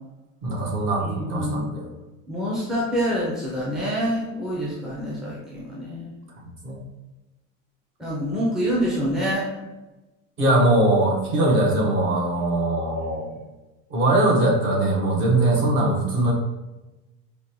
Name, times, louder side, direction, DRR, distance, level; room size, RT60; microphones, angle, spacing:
voice 1, 0.4-1.9 6.6-6.8 10.4-13.3 13.9-16.3, right 1 dB, 40° right, -2 dB, 1.0 m, -21 dB
voice 2, 1.2-1.7 2.3-6.1 8.0-9.5, equal, ahead, -6 dB, 0.5 m, -26 dB
4.9 x 2.2 x 2.9 m, 1.1 s
cardioid pair, 160°, 29 cm